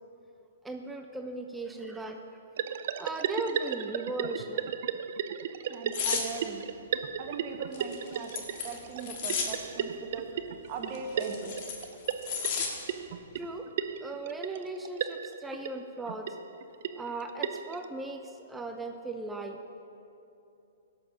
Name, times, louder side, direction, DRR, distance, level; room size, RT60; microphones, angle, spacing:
voice 1, 0.6-2.2 3.0-4.8 6.0-6.2 13.4-13.7 14.0-16.4 17.0-19.6, right 2 dB, 10° right, 4 dB, 0.6 m, -38 dB
sound 1, 2.6-17.9, right 8 dB, 60° right, 0.5 m, -35 dB
voice 2, 5.7-6.7 7.2-11.6, right 5 dB, 35° right, 3 dB, 1.4 m, -40 dB
sound 2, 5.9-6.3 7.7-9.5 10.9-12.7 13.1-13.3, left 6 dB, 45° left, 1.9 m, -33 dB
16.0 x 6.6 x 5.8 m, 2.8 s
hypercardioid pair, 130°, 0 cm